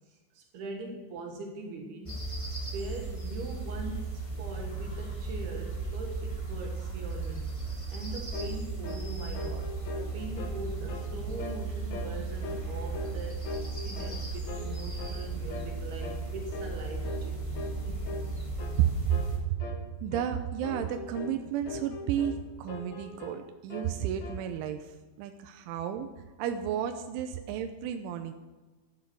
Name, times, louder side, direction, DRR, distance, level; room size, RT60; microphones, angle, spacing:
voice 1, 0.1-2.2 2.7-7.5 7.9-18.1, right 3 dB, 65° right, 2 dB, 3.1 m, -42 dB
sound 1, 2.0-19.4, right 3 dB, 15° left, 0.9 m, -36 dB
sound 2, 8.3-8.6 8.8-9.1 9.3-10.6 10.9-11.1 11.4-11.6 11.9-12.1 12.4-13.2 13.4-14.2 14.5-14.7 15.0-15.2 15.5-15.7 16.0-16.2 16.5-16.8 17.0-17.3 17.5-17.8 18.1-18.3 18.6-18.8 19.1-19.3 19.6-19.8 20.1-20.3 20.6-21.4 21.7-22.4 22.7-23.4 23.7-24.4, left 4 dB, 65° left, 1.8 m, -41 dB
voice 2, 18.8-19.6 20.0-26.1 26.4-28.3, right 9 dB, 90° right, 6 dB, 3.2 m, -32 dB
13.0 x 11.5 x 6.2 m, 1.2 s
omnidirectional pair, 5.5 m